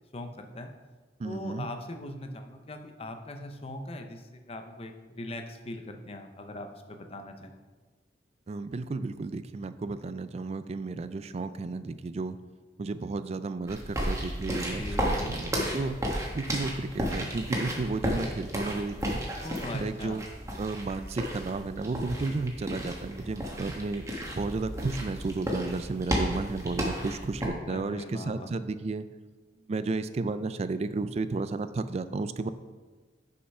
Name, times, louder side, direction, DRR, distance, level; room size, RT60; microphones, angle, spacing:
voice 1, 0.1-0.7 1.2-7.5 14.8-15.4 19.4-20.2 27.7-28.5, left 1 dB, 35° left, 5 dB, 0.7 m, -40 dB
voice 2, 1.2-1.7 8.5-12.4 12.8-16.0 16.3-19.2 19.7-20.2 20.6-24.0 24.3-29.1 29.7-32.5, right 3 dB, 35° right, 12 dB, 0.3 m, -33 dB
sound 1, 13.7-27.5, equal, 15° right, 1.3 m, -33 dB
6.6 x 5.6 x 5.4 m, 1.3 s
head